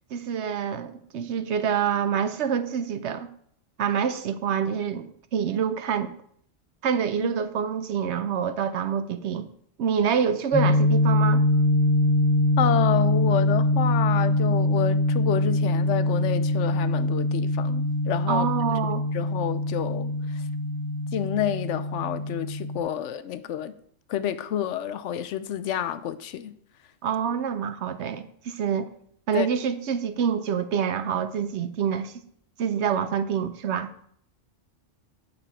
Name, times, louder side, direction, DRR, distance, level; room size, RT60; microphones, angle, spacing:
voice 1, 0.1-3.3 3.8-6.1 6.8-9.5 9.8-11.4 18.3-19.0 27.0-28.9 29.3-32.1 32.6-33.9, right 7 dB, 65° right, 0.9 m, -26 dB
sound 1, 10.5-22.8, left 1 dB, 15° right, 1.8 m, -23 dB
voice 2, 12.6-18.5 19.1-20.4 21.1-23.7 24.1-26.5 29.3-29.5, left 10 dB, 70° left, 0.9 m, -29 dB
8.8 x 6.7 x 4.3 m
omnidirectional pair, 1.3 m